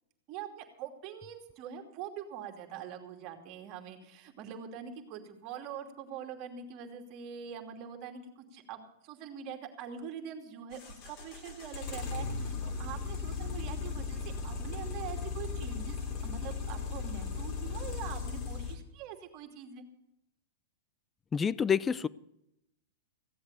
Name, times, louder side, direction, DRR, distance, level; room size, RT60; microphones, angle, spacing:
voice 1, 0.3-16.0 16.2-19.8, right 8 dB, 40° right, 2.7 m, -44 dB
sound 1, 10.7-18.7, left 5 dB, 45° left, 4.2 m, -37 dB
voice 2, 21.3-22.1, left 7 dB, 15° left, 0.5 m, -28 dB
16.0 x 8.0 x 8.3 m
hypercardioid pair, 130°, 0 cm